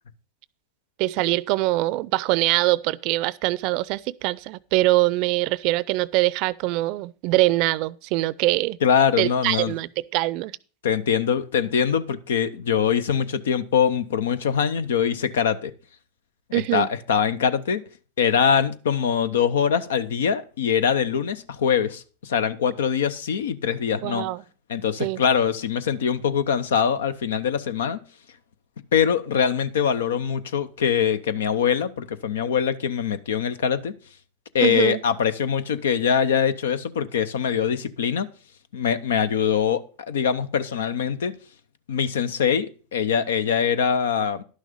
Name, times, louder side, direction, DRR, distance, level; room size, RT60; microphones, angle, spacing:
voice 1, 1.0-8.8 9.2-10.5 16.5-16.9 24.0-24.4 25.0-25.2 34.6-35.0, right 19 dB, 60° right, 0.5 m, -23 dB
voice 2, 8.8-9.7 10.8-15.7 16.5-17.8 18.2-24.3 24.7-28.0 28.9-33.9 34.5-38.3 38.7-41.4 41.9-44.4, left 7 dB, 85° left, 0.7 m, -23 dB
11.0 x 6.4 x 5.0 m
hypercardioid pair, 110°, 0 cm